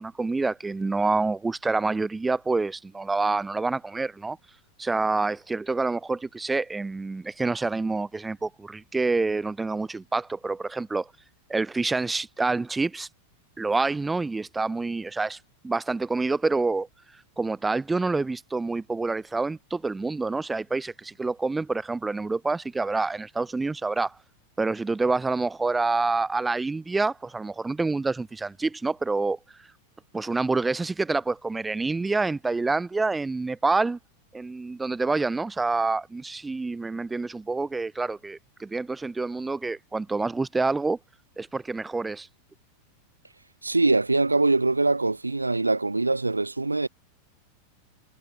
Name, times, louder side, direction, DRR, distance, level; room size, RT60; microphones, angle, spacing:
voice 1, 0.0-4.4 4.8-11.1 11.5-13.1 13.6-15.4 15.6-16.9 17.4-24.2 24.6-29.4 30.1-34.0 34.3-41.0 41.4-42.3, right 3 dB, 10° right, 0.3 m, -27 dB
voice 2, 43.6-46.9, right 3 dB, 80° right, 0.5 m, -23 dB
figure-of-eight pair, 90°, 0 cm